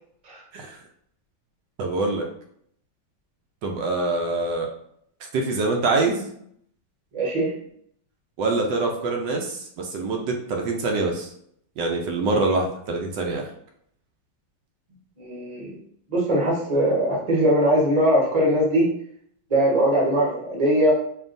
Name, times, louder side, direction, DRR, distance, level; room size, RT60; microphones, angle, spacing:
voice 1, 1.8-2.3 3.6-4.7 5.3-6.3 8.4-11.3 11.8-13.5, right 3 dB, 75° right, 1 dB, 1.2 m, -25 dB
voice 2, 7.1-7.5 15.2-15.7 16.1-18.9 19.5-20.9, right 1 dB, 25° right, -4 dB, 0.9 m, -20 dB
4.5 x 2.9 x 2.5 m, 0.69 s
omnidirectional pair, 2.0 m